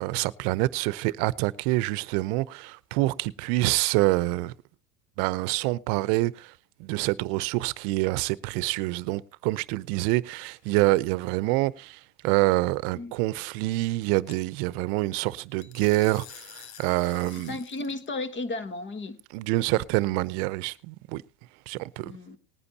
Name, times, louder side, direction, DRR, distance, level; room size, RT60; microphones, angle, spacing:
voice 1, 0.0-4.5 5.2-6.5 6.8-17.6 19.3-21.2 21.7-22.1, right 19 dB, 65° right, 0.9 m, -26 dB
sound 1, 10.4-10.7 14.3-14.4 15.6-18.1, left 10 dB, 50° left, 1.1 m, -48 dB
voice 2, 17.5-19.2 22.0-22.4, left 2 dB, 25° left, 1.5 m, -34 dB
19.5 x 9.8 x 2.9 m
supercardioid pair, 130°, 49 cm